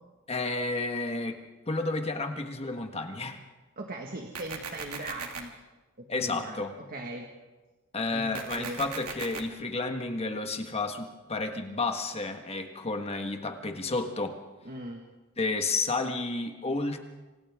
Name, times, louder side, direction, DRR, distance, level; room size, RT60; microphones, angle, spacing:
voice 1, 0.3-1.4 1.7-3.4 6.1-6.8 7.9-14.4 15.4-17.0, left 3 dB, 30° left, 5 dB, 1.6 m, -31 dB
voice 2, 3.8-5.5 6.0-7.3 8.1-8.8 14.7-15.0, right 1 dB, 45° right, 2 dB, 1.8 m, -39 dB
sound 1, 4.3-5.4 8.3-9.4, right 6 dB, 80° right, 2.5 m, -38 dB
26.5 x 26.5 x 3.7 m, 1.2 s
head